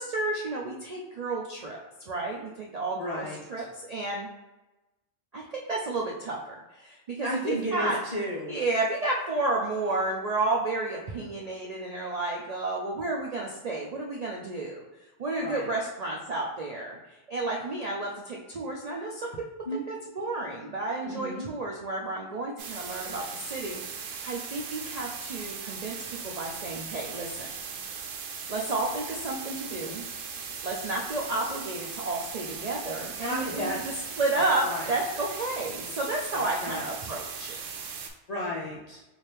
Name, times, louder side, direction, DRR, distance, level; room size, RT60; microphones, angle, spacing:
voice 1, 0.0-1.8 2.1-4.3 5.3-8.0 8.4-14.8 15.2-19.4 19.9-25.9 26.2-27.5 28.5-30.0 30.6-33.8 34.2-37.5, right 2 dB, 55° right, -2 dB, 0.4 m, -31 dB
voice 2, 3.0-3.7 7.2-8.5 15.4-15.7 19.7-19.8 21.0-21.5 33.2-34.0 34.6-34.9 36.3-37.1 38.3-39.0, left 1 dB, 45° left, -4 dB, 0.5 m, -33 dB
sound 1, 22.6-38.1, right 6 dB, 75° right, 0.9 m, -38 dB
4.4 x 2.5 x 3.3 m, 1.0 s
omnidirectional pair, 1.3 m